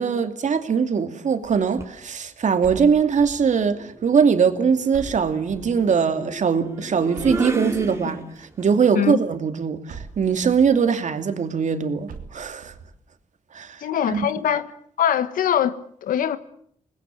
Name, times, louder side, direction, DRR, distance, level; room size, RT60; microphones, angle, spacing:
voice 1, 0.0-12.7 13.5-13.8 14.1-14.3, right 6 dB, 60° right, 2.6 m, -21 dB
sound 1, 1.8-2.0 3.4-8.6, right 2 dB, 20° right, 3.1 m, -34 dB
sound 2, 2.6-3.6 4.9-5.9 7.1-8.1 9.9-10.7 12.1-12.9, right 5 dB, 90° right, 2.8 m, -41 dB
voice 2, 13.8-14.7 15.0-16.4, left 9 dB, 90° left, 1.4 m, -22 dB
25.5 x 20.0 x 7.6 m
cardioid pair, 75°, 14 cm